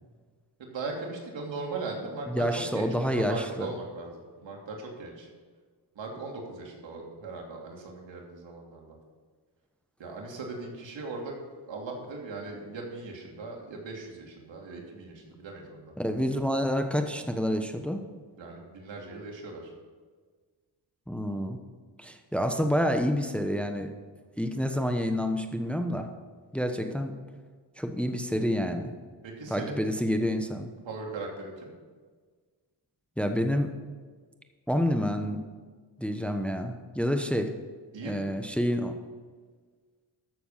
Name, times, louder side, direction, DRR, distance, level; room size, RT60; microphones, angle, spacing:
voice 1, 0.6-5.3 5.9-9.0 10.0-11.3 11.6-15.9 18.4-19.7 29.2-29.8 30.8-31.7 37.9-38.3, right 3 dB, 75° right, -1 dB, 2.9 m, -39 dB
voice 2, 2.3-3.7 16.0-18.0 21.1-21.6 22.0-23.9 24.4-26.1 26.5-27.1 27.8-28.9 29.5-30.7 33.2-33.7 34.7-35.4 36.0-37.5 38.0-39.0, equal, 5° left, 6 dB, 1.0 m, -28 dB
13.5 x 7.0 x 5.6 m, 1.5 s
cardioid pair, 80°, 45 cm